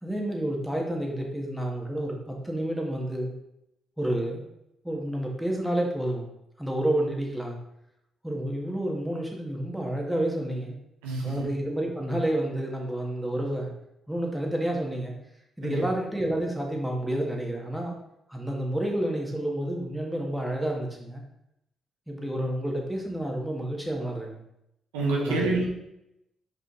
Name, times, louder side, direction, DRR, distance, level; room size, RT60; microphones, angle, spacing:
voice 1, 0.0-3.3 4.0-4.4 4.8-6.3 6.6-7.6 8.2-10.8 11.2-13.7 14.1-15.1 15.6-18.0 18.3-21.2 22.1-24.4 25.1-25.6, right 1 dB, 5° right, 0 dB, 1.8 m, -29 dB
voice 2, 11.0-11.5 15.6-15.8 24.9-25.6, right 2 dB, 85° right, -2 dB, 1.1 m, -27 dB
5.3 x 5.0 x 4.0 m, 0.82 s
hypercardioid pair, 45°, 0 cm